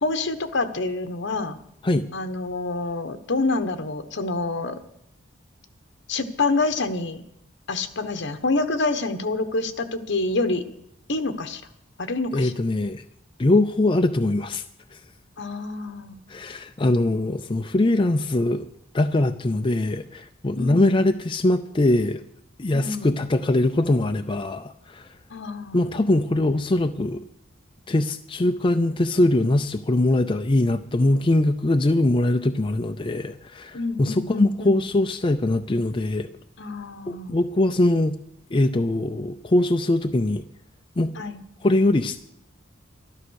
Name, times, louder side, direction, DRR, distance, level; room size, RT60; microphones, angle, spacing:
voice 1, 0.0-1.6 2.1-4.8 6.1-7.2 7.7-10.6 11.1-11.6 12.0-12.5 15.4-16.2 20.6-21.0 22.7-23.1 25.3-25.9 33.7-34.8 36.6-37.4 41.2-41.4, left 3 dB, 65° left, 10 dB, 1.1 m, -27 dB
voice 2, 12.3-13.0 13.4-14.6 14.9-15.0 16.3-18.6 18.9-22.2 22.6-25.1 25.7-27.2 27.9-36.3 37.1-38.2 38.5-40.5 41.0-41.1 41.6-42.2, left 2 dB, 25° left, 7 dB, 0.5 m, -22 dB
12.5 x 12.5 x 6.4 m, 0.76 s
head